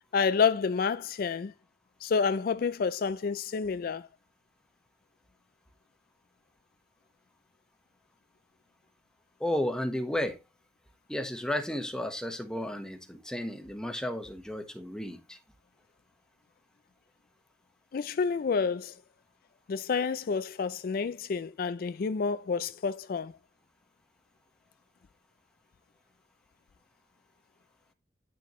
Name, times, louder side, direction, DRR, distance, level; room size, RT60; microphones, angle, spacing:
voice 1, 0.1-1.5 2.0-4.1 17.9-18.9 19.7-23.3, left 5 dB, 50° left, 0.4 m, -29 dB
voice 2, 9.4-10.4 11.1-15.4, left 1 dB, 5° left, 1.2 m, -33 dB
10.0 x 6.7 x 3.1 m
head